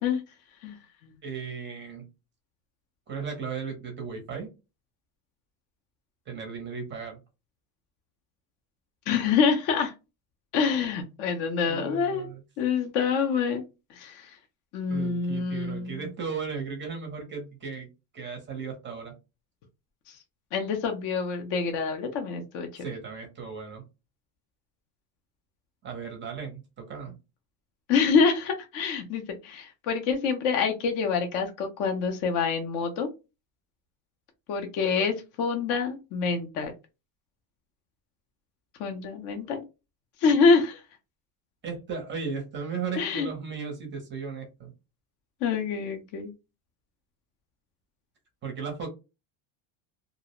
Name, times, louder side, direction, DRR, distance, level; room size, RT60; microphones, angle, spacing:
voice 1, 1.2-2.0 3.1-4.5 6.3-7.2 11.7-12.4 14.9-17.9 18.1-19.1 22.8-23.8 25.8-27.1 41.6-44.7 48.4-48.9, right 5 dB, 25° right, 4 dB, 0.6 m, -36 dB
voice 2, 9.1-9.9 10.5-12.3 12.6-13.6 13.9-14.3 14.7-16.0 20.1-20.2 20.5-22.8 27.9-33.1 34.5-36.7 38.8-39.6 40.2-40.8 43.0-43.3 45.4-46.3, left 5 dB, 40° left, 4 dB, 0.5 m, -26 dB
2.4 x 2.0 x 2.8 m, 0.27 s
cardioid pair, 150°, 49 cm